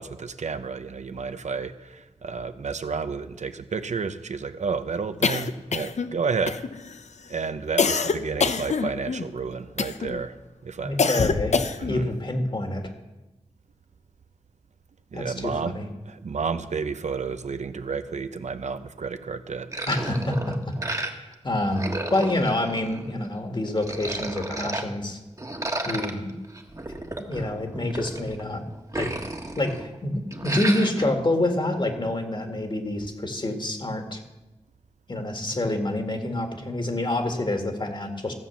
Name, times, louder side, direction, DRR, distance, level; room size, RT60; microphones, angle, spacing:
voice 1, 0.0-6.6 7.3-10.4 10.6-11.0 11.8-12.1 15.1-15.7 16.1-19.7, right 5 dB, 80° right, 10 dB, 0.7 m, -31 dB
sound 1, 5.2-6.1 6.5-7.0 7.8-9.3 9.8-10.2 11.0-12.0, left 5 dB, 75° left, 0.6 m, -25 dB
voice 2, 10.8-11.6 11.9-12.9 15.1-15.9 19.9-20.7 21.4-25.2 25.8-26.2 27.3-28.6 28.9-29.1 29.6-30.1 30.4-34.2 35.1-38.3, left 1 dB, 40° left, 5 dB, 1.9 m, -27 dB
sound 2, 19.7-21.3 21.6-23.3 23.7-24.8 25.4-28.4 28.7-30.0 30.3-31.1, right 2 dB, 30° right, 1.4 m, -33 dB
15.0 x 7.5 x 7.1 m, 1.1 s
wide cardioid pair, 80°, 12 cm